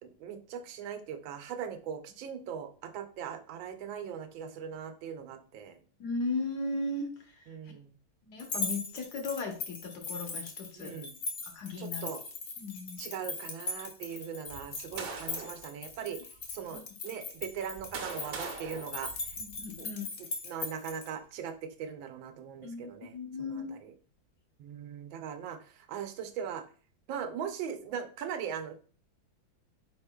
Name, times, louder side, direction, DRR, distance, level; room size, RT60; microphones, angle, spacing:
voice 1, 0.0-5.8 7.5-7.9 10.8-11.1 11.8-12.2 13.0-16.2 16.5-19.1 19.8-19.9 20.4-23.9 24.6-26.6 27.1-28.7, right 8 dB, 90° right, 7 dB, 1.4 m, -40 dB
voice 2, 6.0-7.5 8.2-10.9 11.5-12.0 12.6-13.0 16.7-16.8 19.4-20.1 22.6-23.7, left 3 dB, 65° left, 4 dB, 1.3 m, -36 dB
sound 1, 8.4-21.1, left 3 dB, 50° left, 0.9 m, -39 dB
sound 2, 14.5-15.6 16.4-16.5 17.4-19.8, right 4 dB, 60° right, 1.0 m, -42 dB
4.9 x 4.4 x 2.2 m, 0.41 s
omnidirectional pair, 2.1 m